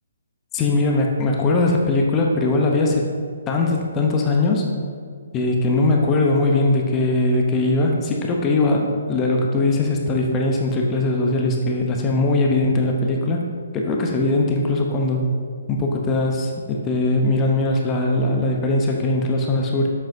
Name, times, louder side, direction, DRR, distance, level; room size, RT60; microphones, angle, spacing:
voice 1, 0.5-3.0 3.5-4.6 5.3-13.5 13.7-15.2 15.7-19.9, left 2 dB, 20° left, 0 dB, 0.8 m, -20 dB
7.4 x 7.2 x 2.7 m, 2.1 s
figure-of-eight pair, 135°, 0 cm